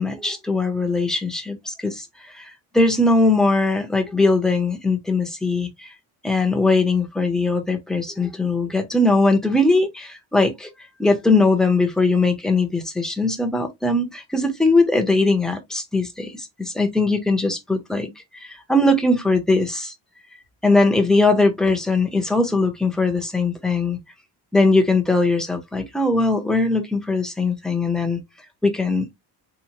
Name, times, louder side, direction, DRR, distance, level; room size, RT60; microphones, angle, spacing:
voice 1, 0.0-2.1 2.3-5.9 6.2-10.7 11.0-19.9 20.6-24.0 24.5-28.2 28.6-29.1, left 2 dB, ahead, 0.6 m, -20 dB
3.9 x 2.9 x 2.7 m
cardioid pair, 170°, 39 cm